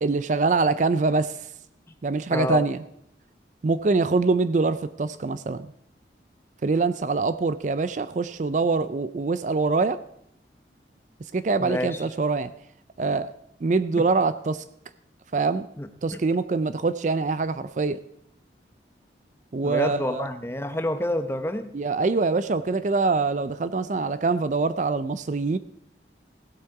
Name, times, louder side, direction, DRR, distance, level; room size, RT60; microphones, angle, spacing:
voice 1, 0.0-1.3 2.0-2.8 3.6-5.6 6.6-10.0 11.3-12.5 13.0-13.3 13.6-14.6 15.3-15.7 16.0-18.0 19.5-20.2 21.7-25.6, right 3 dB, 40° right, 13 dB, 0.4 m, -24 dB
voice 2, 2.3-2.6 11.6-12.0 15.8-16.2 19.6-21.7, left 1 dB, 15° left, 8 dB, 0.7 m, -28 dB
16.5 x 8.2 x 4.7 m, 0.73 s
head